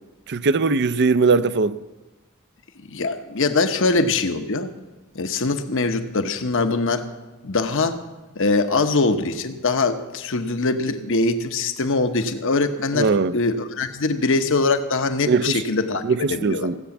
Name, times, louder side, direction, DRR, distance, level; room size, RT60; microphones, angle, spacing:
voice 1, 0.3-1.8 12.9-13.3 15.3-15.6 16.0-16.8, right 4 dB, 55° right, 0.5 m, -20 dB
voice 2, 2.9-4.7 5.1-7.1 7.4-8.0 8.3-16.0 16.3-16.7, left 3 dB, 65° left, 1.0 m, -22 dB
16.0 x 8.4 x 7.2 m
head